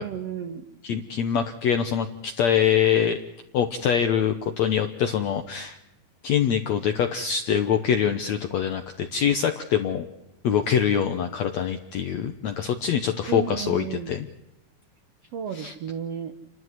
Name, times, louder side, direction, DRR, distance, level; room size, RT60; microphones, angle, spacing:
voice 1, 0.0-0.6 13.3-14.1 15.3-16.3, right 8 dB, 90° right, 8 dB, 1.3 m, -32 dB
voice 2, 0.8-3.2 3.5-5.8 6.2-10.0 10.4-14.3 15.5-15.7, left 8 dB, 75° left, 7 dB, 1.6 m, -24 dB
29.5 x 12.5 x 9.5 m, 0.93 s
omnidirectional pair, 4.5 m